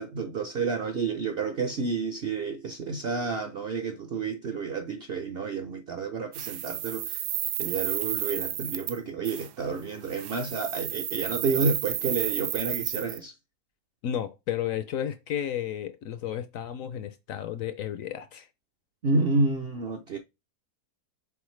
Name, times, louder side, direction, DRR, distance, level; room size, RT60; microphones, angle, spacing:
voice 1, 0.0-7.2 7.6-13.3 19.0-20.2, right 4 dB, 55° right, 0.6 m, -30 dB
sound 1, 6.3-9.0 9.2-9.5 10.0-13.2, right 12 dB, 80° right, 1.2 m, -32 dB
voice 2, 14.0-18.5, left 10 dB, 70° left, 0.8 m, -32 dB
7.0 x 4.1 x 3.2 m
omnidirectional pair, 1.7 m